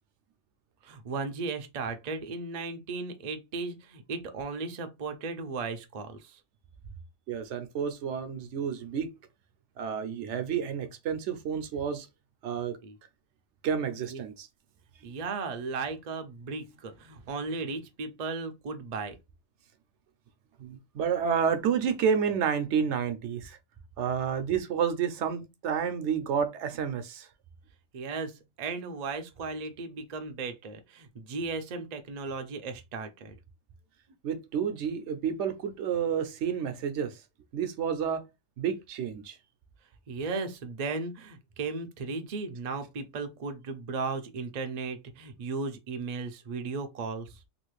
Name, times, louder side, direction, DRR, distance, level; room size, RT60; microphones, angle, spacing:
voice 1, 0.8-6.4 12.8-13.0 14.1-14.2 15.0-19.1 27.9-33.4 40.1-47.4, right 4 dB, 50° right, 0.5 m, -36 dB
voice 2, 7.3-9.1 9.8-12.1 12.4-12.8 13.6-14.5 20.6-23.6 24.0-27.3 34.2-37.2 37.5-38.2 38.6-39.4, right 7 dB, 75° right, 0.9 m, -30 dB
3.0 x 2.4 x 3.0 m
omnidirectional pair, 1.3 m